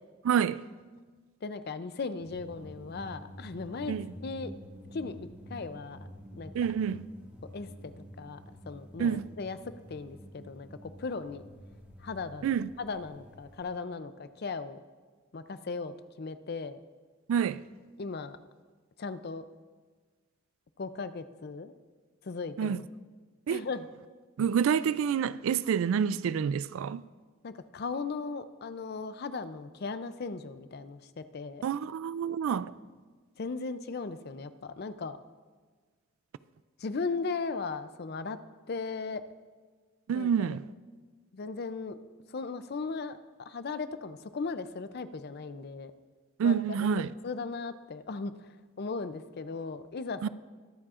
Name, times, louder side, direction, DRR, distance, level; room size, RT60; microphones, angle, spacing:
voice 1, 0.2-0.6 3.9-4.1 6.5-7.1 9.0-9.3 12.4-12.7 17.3-17.6 22.6-22.8 23.5-23.6 24.4-27.0 31.6-32.7 40.1-40.7 46.4-47.1 50.2-50.3, right 7 dB, 70° right, 0.3 m, -28 dB
voice 2, 1.4-4.0 4.2-4.5 4.9-6.0 6.3-6.5 7.5-8.4 8.7-9.6 9.9-11.4 12.0-14.8 15.3-16.8 18.0-18.4 19.0-19.4 20.8-21.7 22.2-22.8 23.5-23.9 27.4-31.6 33.4-35.2 36.8-38.4 38.7-39.2 40.1-40.5 41.3-42.0 42.3-45.9 46.4-46.9 47.2-48.5 48.8-50.3, left 4 dB, 50° left, 0.5 m, -37 dB
sound 1, 2.2-13.7, equal, 10° right, 1.7 m, -49 dB
22.0 x 7.5 x 2.5 m
head